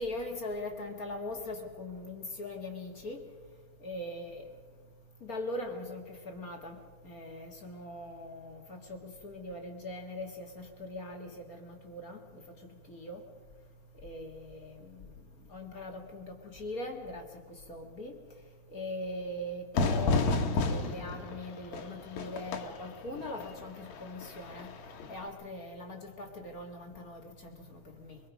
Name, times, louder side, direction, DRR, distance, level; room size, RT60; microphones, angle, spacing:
voice 1, 0.0-3.2 3.8-4.5 5.2-13.2 14.0-15.1 15.5-18.2 18.7-24.7 25.1-28.2, left 1 dB, 35° left, 1.8 m, -41 dB
Fire / Fireworks, 19.7-25.3, left 3 dB, 65° left, 2.6 m, -32 dB
24.5 x 23.5 x 5.2 m
omnidirectional pair, 3.5 m